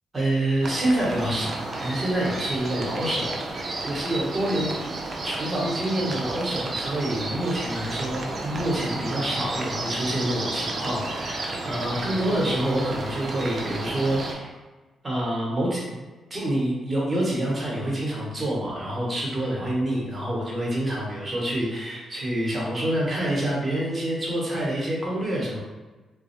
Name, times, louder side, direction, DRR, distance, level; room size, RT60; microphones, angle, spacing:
voice 1, 0.1-4.7 5.2-14.5 15.0-15.8 16.3-25.6, right 1 dB, 30° right, -5 dB, 1.0 m, -27 dB
sound 1, 0.6-14.3, right 2 dB, 50° right, 0.4 m, -32 dB
2.2 x 2.0 x 2.8 m, 1.2 s
cardioid pair, 70°, 0 cm